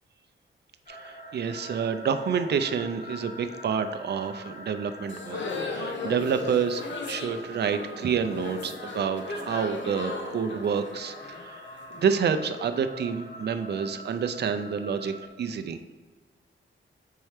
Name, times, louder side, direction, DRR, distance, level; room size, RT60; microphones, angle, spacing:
sound 1, 0.9-15.3, left 1 dB, 40° left, 0.9 m, -44 dB
voice 1, 0.9-15.8, right 6 dB, 55° right, 8 dB, 0.4 m, -29 dB
sound 2, 5.1-12.0, left 3 dB, 65° left, 0.8 m, -36 dB
4.6 x 4.2 x 4.9 m, 1.4 s
wide cardioid pair, 125°, 21 cm